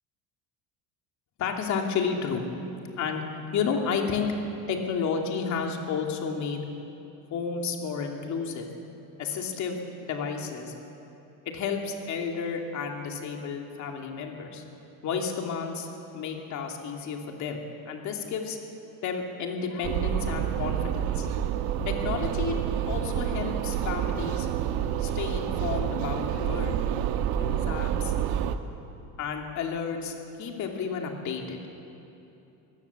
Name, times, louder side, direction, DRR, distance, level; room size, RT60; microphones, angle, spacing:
voice 1, 1.4-2.5 3.0-3.2 3.5-4.3 4.7-6.7 7.3-8.7 9.2-10.7 11.4-14.6 15.0-15.9 16.1-18.6 19.0-21.3 21.9-22.6 22.9-24.5 25.0-26.7 27.3-28.1 29.2-31.6, left 6 dB, 50° left, 2 dB, 2.7 m, -31 dB
sound 1, 19.8-28.6, right 9 dB, 85° right, 1.2 m, -28 dB
25.0 x 16.5 x 7.3 m, 2.9 s
cardioid pair, 155°, 36 cm